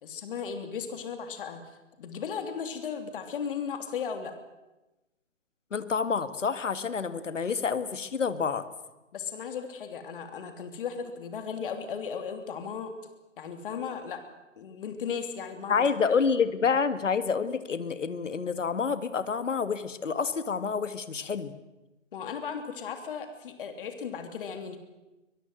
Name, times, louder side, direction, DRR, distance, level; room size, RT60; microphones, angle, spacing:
voice 1, 0.0-1.6 2.0-4.3 9.1-12.9 13.4-14.2 14.6-15.9 22.1-24.8, left 6 dB, 45° left, 7 dB, 3.1 m, -36 dB
voice 2, 5.7-8.6 15.7-21.5, left 5 dB, 70° left, 12 dB, 2.1 m, -28 dB
23.5 x 21.5 x 7.9 m, 1.0 s
figure-of-eight pair, 145°, 38 cm